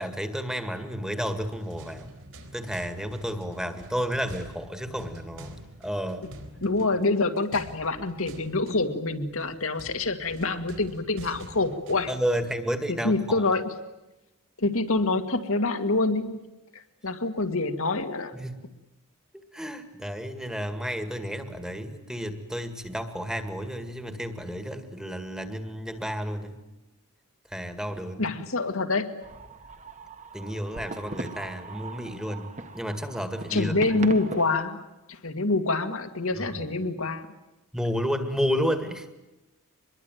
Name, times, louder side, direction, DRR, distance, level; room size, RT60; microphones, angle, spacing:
voice 1, 0.0-2.1 2.5-5.6 5.8-6.3 12.1-13.4 18.3-18.6 19.5-26.6 27.5-28.3 30.3-32.5 32.7-33.8 36.4-36.7 37.7-39.1, equal, 5° right, 8 dB, 2.0 m, -31 dB
sound 1, 1.4-12.7, right 1 dB, 60° right, 4.5 m, -47 dB
voice 2, 6.6-12.1 12.9-13.7 14.6-16.4 16.7-18.3 28.2-29.1 33.5-34.8 35.1-37.3, left 3 dB, 65° left, 7 dB, 2.1 m, -26 dB
sound 2, 29.2-34.7, right 2 dB, 35° right, 1.4 m, -40 dB
24.5 x 22.0 x 9.3 m, 0.99 s
head